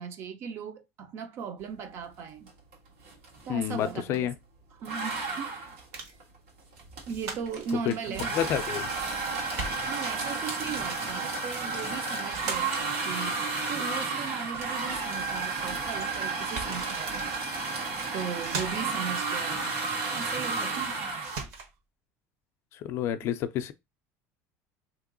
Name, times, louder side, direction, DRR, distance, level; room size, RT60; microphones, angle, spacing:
voice 1, 0.0-2.5 3.5-4.3 4.8-5.7 7.1-8.3 9.8-13.4 13.7-17.3 18.1-19.8 20.1-21.0 23.2-23.3, right 6 dB, 40° right, 0.5 m, -37 dB
sound 1, 2.5-2.7 3.0-4.3 4.8-21.4, right 3 dB, 85° right, 1.5 m, -32 dB
voice 2, 3.5-4.3 7.9-8.0 8.3-8.9 22.7-23.7, left 10 dB, 45° left, 0.4 m, -29 dB
sound 2, 5.9-6.2 7.1-7.7 8.7-9.2 9.5-10.2 11.8-12.0 12.3-12.9 16.0-16.1 16.4-16.9 17.8-18.1 18.4-19.0 20.7-20.9 21.2-21.7, right 4 dB, 55° right, 1.1 m, -39 dB
2.9 x 2.9 x 3.7 m
cardioid pair, 165°, 6 cm